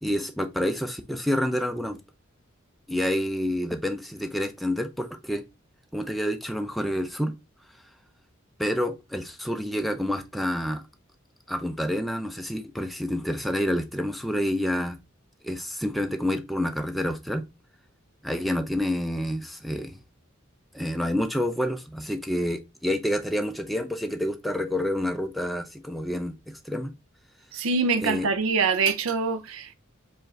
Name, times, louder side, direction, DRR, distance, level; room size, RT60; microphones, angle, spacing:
voice 1, 0.0-2.0 2.9-5.4 5.9-7.3 8.6-10.8 11.5-15.0 15.4-17.4 18.2-20.0 20.7-26.9 28.0-28.3, equal, ahead, 0.4 m, -28 dB
voice 2, 27.5-29.7, right 4 dB, 85° right, 0.5 m, -24 dB
4.8 x 2.5 x 3.1 m
head